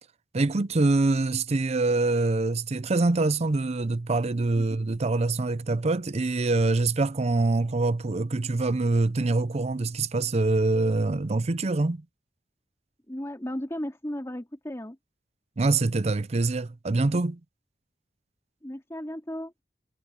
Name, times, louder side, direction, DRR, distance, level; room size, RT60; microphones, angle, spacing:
voice 1, 0.3-12.0 15.6-17.4, right 3 dB, 40° right, 0.6 m, -25 dB
voice 2, 13.1-15.0 18.6-19.5, equal, 15° left, 2.7 m, -35 dB
head